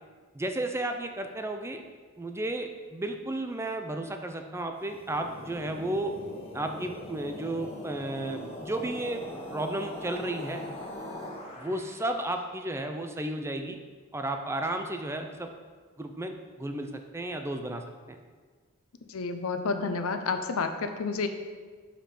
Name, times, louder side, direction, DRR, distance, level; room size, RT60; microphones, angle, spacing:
voice 1, 0.3-1.8 2.2-6.1 6.5-10.6 11.6-13.8 14.1-15.5 16.0-17.8 18.1-18.2, right 1 dB, 10° right, 6 dB, 0.4 m, -33 dB
sound 1, 4.8-12.2, left 1 dB, 25° left, 1.0 m, -41 dB
voice 2, 19.1-21.3, left 4 dB, 90° left, 8 dB, 0.6 m, -30 dB
5.1 x 5.1 x 5.8 m, 1.5 s
head